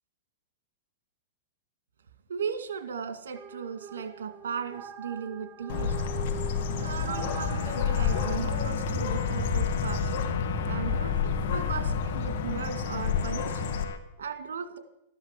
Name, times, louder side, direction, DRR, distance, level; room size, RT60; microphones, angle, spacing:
voice 1, 2.3-6.0 6.7-10.1 10.7-13.7 14.2-14.8, right 6 dB, 85° right, 9 dB, 2.2 m, -36 dB
sound 1, 3.3-8.4, right 6 dB, 35° right, 1.1 m, -43 dB
Bird, 5.7-13.8, left 6 dB, 60° left, 2.1 m, -29 dB
sound 2, 7.5-14.0, left 5 dB, 80° left, 2.0 m, -40 dB
13.5 x 10.5 x 8.2 m, 0.82 s
hypercardioid pair, 130°, 0 cm